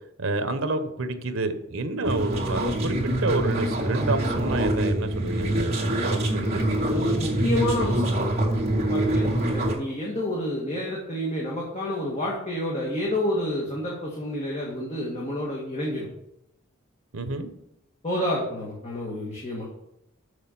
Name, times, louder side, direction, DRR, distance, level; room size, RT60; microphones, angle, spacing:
voice 1, 0.2-6.7 17.1-17.5, right 2 dB, 80° right, 9 dB, 1.0 m, -29 dB
sound 1, 2.0-9.7, right 1 dB, 30° right, 2.4 m, -25 dB
voice 2, 6.9-8.4 8.8-16.1 18.0-19.7, left 1 dB, 30° left, -3 dB, 1.7 m, -29 dB
6.7 x 6.4 x 7.3 m, 0.83 s
head